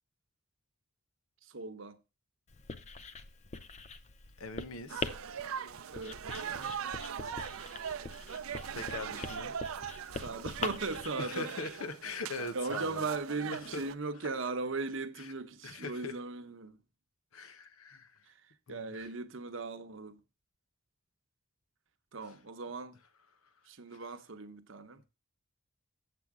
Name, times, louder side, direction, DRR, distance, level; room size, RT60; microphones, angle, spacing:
voice 1, 1.4-2.0 5.9-6.2 10.2-11.5 12.5-16.8 18.3-18.4 18.7-20.2 22.1-23.0 23.7-25.0, right 3 dB, 65° right, 0.8 m, -38 dB
Writing, 2.5-11.1, left 3 dB, 35° left, 0.5 m, -43 dB
voice 2, 4.4-5.1 8.7-9.5 11.2-13.1 13.5-13.8 15.2-15.3 15.6-16.1 17.3-18.2 18.7-19.1 22.2-22.3 23.9-24.0, left 3 dB, 85° left, 0.9 m, -41 dB
sound 1, 4.9-14.0, right 7 dB, 85° right, 0.5 m, -41 dB
7.6 x 7.6 x 3.6 m
head